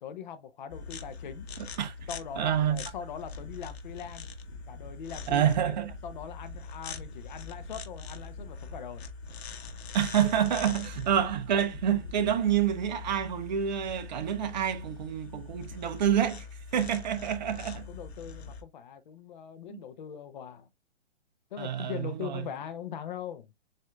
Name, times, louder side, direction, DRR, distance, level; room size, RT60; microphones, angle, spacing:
voice 1, 0.0-1.5 2.1-4.3 4.7-5.7 6.0-9.0 10.7-10.9 17.7-20.7 21.5-23.5, left 8 dB, 40° left, 0.7 m, -41 dB
sound 1, 0.7-18.6, left 4 dB, 60° left, 1.1 m, -43 dB
voice 2, 2.4-2.8 5.3-5.9 9.9-16.5 16.7-17.8 19.7-19.8 21.6-22.4, right 9 dB, 40° right, 0.8 m, -28 dB
7.5 x 2.7 x 2.2 m
hypercardioid pair, 155°, 35 cm